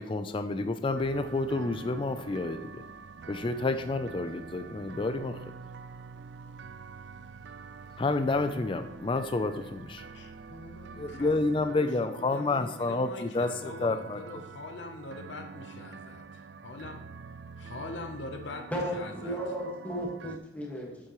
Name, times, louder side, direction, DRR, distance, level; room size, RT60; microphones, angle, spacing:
voice 1, 0.0-2.8 3.3-5.4 8.0-10.0 11.0-13.5 13.8-14.2, left 3 dB, 25° left, 8 dB, 0.3 m, -29 dB
sound 1, 1.0-20.4, right 5 dB, 60° right, 0.3 m, -46 dB
voice 2, 10.1-11.9 12.2-17.0 17.6-18.6 18.9-19.4, left 3 dB, 65° left, 4 dB, 0.8 m, -43 dB
voice 3, 18.7-21.1, equal, 10° left, -2 dB, 1.6 m, -34 dB
8.2 x 7.5 x 3.0 m, 0.91 s
head